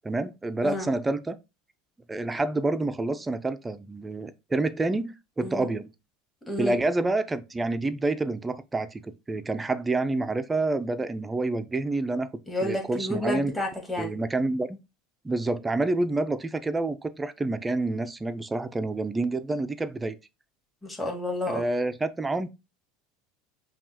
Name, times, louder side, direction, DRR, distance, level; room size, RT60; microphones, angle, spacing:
voice 1, 0.0-1.4 2.1-5.9 6.6-12.3 12.6-13.5 14.0-14.8 15.2-20.2 21.5-22.5, right 2 dB, 15° right, 0.4 m, -28 dB
voice 2, 6.5-6.8 12.5-14.1 20.8-21.6, left 1 dB, 10° left, 1.7 m, -30 dB
5.3 x 2.4 x 2.8 m
hypercardioid pair, 85°, 0 cm